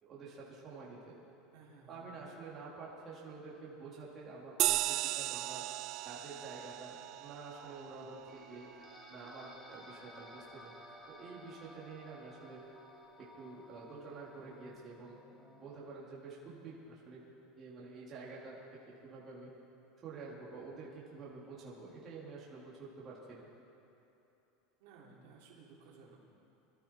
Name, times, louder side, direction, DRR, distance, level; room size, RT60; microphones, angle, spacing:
voice 1, 0.0-1.1 1.9-5.6 6.0-8.7 9.1-10.7 11.1-12.6 13.2-15.2 15.6-17.2 17.6-19.5 20.0-23.5, right 4 dB, 25° right, -6 dB, 2.5 m, -49 dB
voice 2, 1.5-2.1 24.8-26.2, right 4 dB, 70° right, -3 dB, 3.3 m, -57 dB
sound 1, 4.6-9.5, right 16 dB, 40° right, 0.3 m, -37 dB
sound 2, 8.3-15.9, left 1 dB, 15° left, 1.6 m, -56 dB
24.0 x 13.0 x 4.3 m, 2.8 s
supercardioid pair, 170°, 0 cm